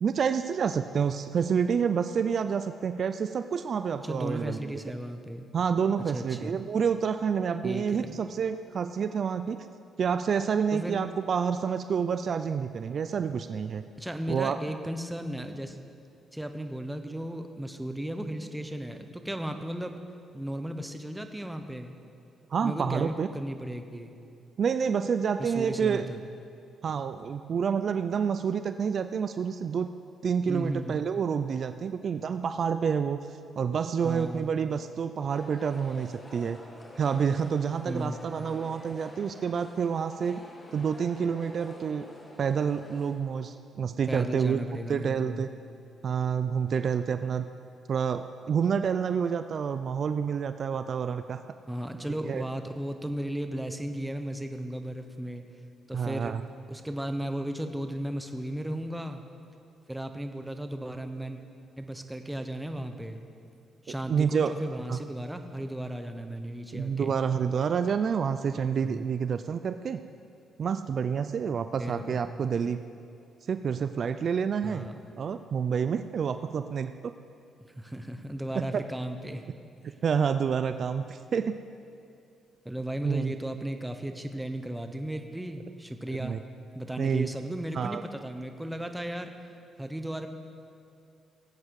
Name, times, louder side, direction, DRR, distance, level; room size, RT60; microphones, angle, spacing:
voice 1, 0.0-4.7 5.5-9.7 10.0-13.8 14.3-14.6 22.5-23.3 24.6-26.0 26.8-29.9 30.2-36.6 37.0-40.4 40.7-42.0 42.4-44.6 44.9-45.5 46.0-47.4 47.9-51.4 52.3-52.4 55.9-56.4 64.1-64.5 64.9-65.0 66.7-70.0 70.6-72.8 73.5-74.8 75.2-76.9 78.5-78.8 80.0-81.6 83.0-83.3 86.2-86.4 87.0-87.3 87.7-88.0, right 6 dB, 55° right, 10 dB, 0.4 m, -28 dB
voice 2, 4.0-5.5 6.1-6.6 7.6-8.2 10.7-11.0 14.0-15.8 16.3-20.0 20.3-21.9 22.6-24.1 25.4-26.2 30.5-31.0 34.0-34.5 37.9-38.2 44.1-45.5 51.7-55.4 55.9-56.4 56.7-59.2 59.9-61.4 61.8-63.2 63.8-67.2 68.8-69.1 71.8-72.2 74.6-75.0 77.8-79.4 79.9-80.0 82.6-86.4 86.7-89.3 89.8-90.3, right 1 dB, 5° right, 6 dB, 1.0 m, -35 dB
sound 1, 35.3-43.1, left 1 dB, 25° left, 1.9 m, -48 dB
18.5 x 8.4 x 4.8 m, 2.5 s
cardioid pair, 90°, 0 cm